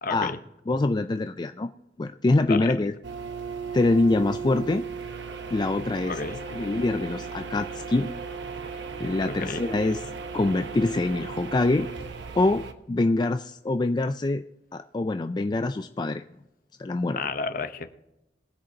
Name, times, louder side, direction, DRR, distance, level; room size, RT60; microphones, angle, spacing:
voice 1, 0.0-0.4 2.5-2.7 6.1-6.4 9.3-9.6 17.2-17.9, left 4 dB, 50° left, 9 dB, 0.8 m, -31 dB
voice 2, 0.7-1.7 2.0-2.9 3.7-4.8 5.5-6.2 6.5-8.1 9.0-10.0 10.3-11.9 12.4-14.4 14.7-16.2 16.8-17.2, left 2 dB, 25° left, 8 dB, 0.3 m, -25 dB
sound 1, 3.0-12.7, right 5 dB, 85° right, 1.0 m, -36 dB
21.5 x 7.8 x 2.8 m, 0.94 s
head